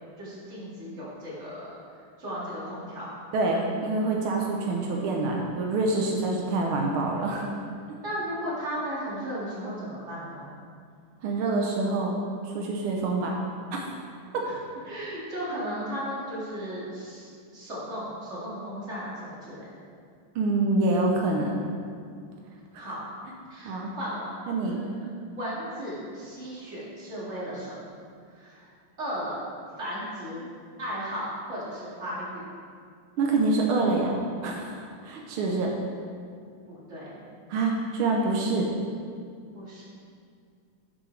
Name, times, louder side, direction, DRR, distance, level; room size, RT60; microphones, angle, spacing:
voice 1, 0.2-3.1 8.0-10.5 14.5-14.6 14.9-19.7 22.7-23.0 23.5-24.3 24.6-24.9 25.3-27.8 28.3-28.7 29.0-29.3 29.8-30.5 30.8-32.5 36.7-37.2 39.5-39.9, equal, 35° right, -7 dB, 2.4 m, -35 dB
voice 2, 3.3-7.5 11.2-12.2 12.4-13.4 13.7-13.8 14.3-14.5 20.3-21.6 22.7-22.9 23.6-23.9 24.5-24.8 33.2-34.2 34.4-35.7 37.5-38.7, right 3 dB, 85° right, 0 dB, 1.7 m, -26 dB
10.5 x 6.2 x 3.3 m, 2.2 s
omnidirectional pair, 2.3 m